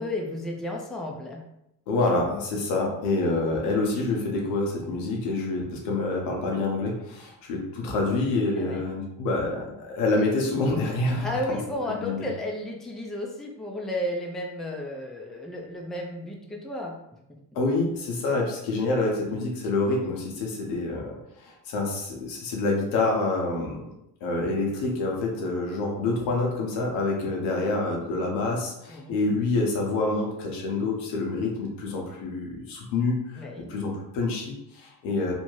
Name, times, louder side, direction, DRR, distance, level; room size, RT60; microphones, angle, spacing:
voice 1, 0.0-1.4 8.6-8.8 11.2-17.0 28.9-29.2 33.4-33.7, left 1 dB, ahead, 0 dB, 0.4 m, -33 dB
voice 2, 1.9-11.6 12.0-12.2 17.5-23.8 24.2-35.3, left 2 dB, 80° left, -1 dB, 0.8 m, -27 dB
2.6 x 2.2 x 3.0 m, 0.85 s
supercardioid pair, 60°, 47 cm